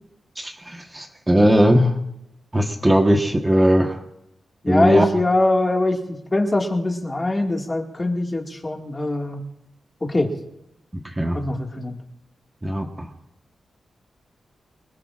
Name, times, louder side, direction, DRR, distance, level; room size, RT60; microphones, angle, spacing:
voice 1, 0.4-2.0 2.5-4.0 4.7-5.1 10.9-11.4 12.6-13.1, equal, 10° right, 2 dB, 1.2 m, -19 dB
voice 2, 4.6-6.0 6.3-9.4 10.0-10.3 11.3-12.0, left 2 dB, 20° left, 1 dB, 1.9 m, -22 dB
26.0 x 21.5 x 2.5 m, 0.81 s
wide cardioid pair, 175°, 0 cm